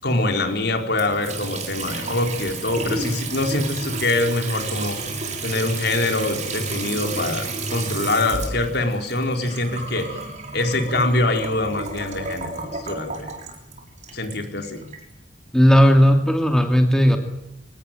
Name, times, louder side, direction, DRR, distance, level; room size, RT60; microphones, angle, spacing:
voice 1, 0.0-5.0 5.4-10.2 10.5-13.3 14.1-14.9, left 2 dB, 60° left, 4 dB, 4.6 m, -24 dB
Water tap faucet / Sink (filling or washing) / Trickle dribble, 0.9-15.0, right 3 dB, 40° right, 6.5 m, -31 dB
voice 2, 15.5-17.2, equal, 5° left, 4 dB, 2.7 m, -15 dB
26.0 x 20.0 x 9.4 m, 0.82 s
head